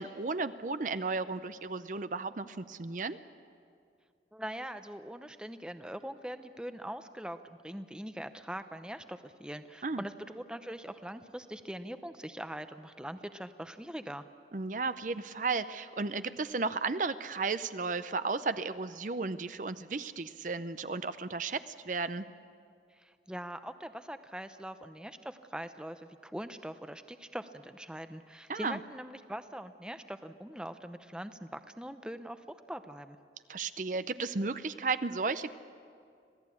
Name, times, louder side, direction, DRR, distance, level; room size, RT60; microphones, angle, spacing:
voice 1, 0.0-3.2 9.8-10.0 14.5-22.2 28.5-28.8 33.5-35.5, right 4 dB, 45° right, 12 dB, 0.6 m, -34 dB
voice 2, 4.3-14.2 22.9-33.2, right 1 dB, 5° right, 9 dB, 0.6 m, -42 dB
26.0 x 17.0 x 8.5 m, 2.3 s
head